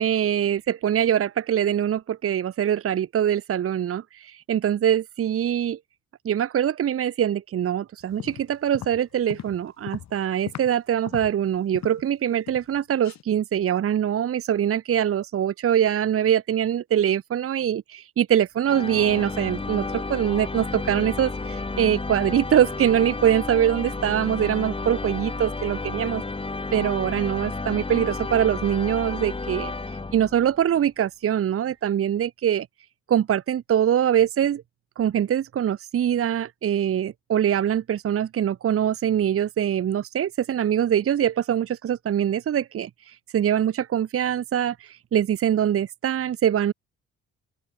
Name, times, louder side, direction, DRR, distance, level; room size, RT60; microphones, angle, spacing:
voice 1, 0.0-5.8 6.2-26.2 26.7-29.7 30.1-32.7 33.1-34.6 35.0-46.7, right 10 dB, 50° right, 0.9 m, -23 dB
sound 1, 8.0-10.8 11.0-12.1 12.5-12.8 13.0-13.2, left 11 dB, 65° left, 1.7 m, -39 dB
sound 2, 18.6-30.6, left 3 dB, 20° left, 1.9 m, -32 dB
open air
cardioid pair, 90°, 30 cm